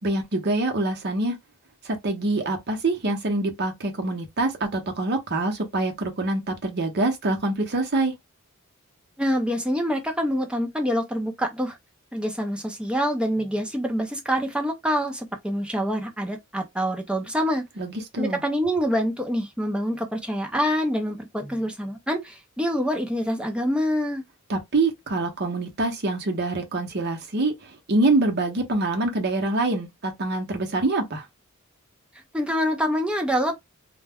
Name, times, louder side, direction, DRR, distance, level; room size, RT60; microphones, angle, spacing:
voice 1, 0.0-1.4 1.8-8.1 17.8-18.4 24.5-31.3, right 2 dB, 50° right, 0.7 m, -25 dB
voice 2, 9.2-11.8 12.1-17.6 18.2-24.2 32.3-33.6, equal, 5° right, 0.5 m, -26 dB
2.2 x 2.1 x 3.5 m
head